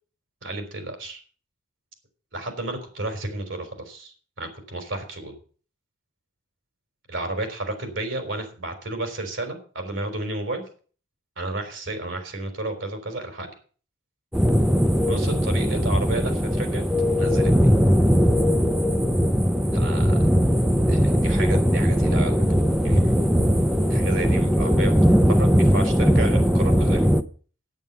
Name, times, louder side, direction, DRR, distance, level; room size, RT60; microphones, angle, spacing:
voice 1, 0.4-1.2 2.3-5.4 7.1-10.6 11.4-13.5 15.1-16.8 17.2-17.5 19.7-20.3 20.9-22.4 22.8-23.1 23.9-27.1, right 2 dB, 65° right, 6 dB, 3.8 m, -32 dB
sound 1, 14.3-27.2, equal, 5° right, 0.6 m, -19 dB
9.3 x 9.1 x 7.0 m, 0.41 s
head